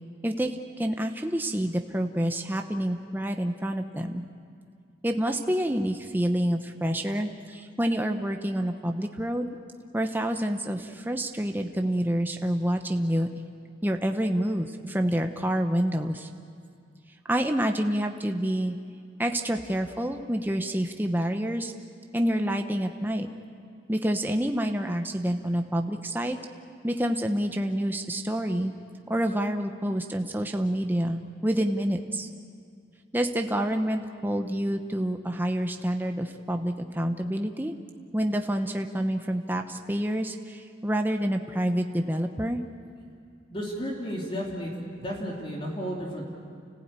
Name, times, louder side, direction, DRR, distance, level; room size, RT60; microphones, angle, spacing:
voice 1, 0.8-4.2 5.0-9.5 9.9-13.3 13.8-16.3 17.3-18.8 19.2-21.7 22.1-23.3 23.9-26.4 26.8-28.7 29.1-32.3 33.1-37.7 38.1-42.6, equal, 10° right, 4 dB, 0.9 m, -28 dB
voice 2, 43.5-46.2, equal, 30° left, -2 dB, 3.3 m, -33 dB
30.0 x 15.5 x 9.0 m, 2.3 s
head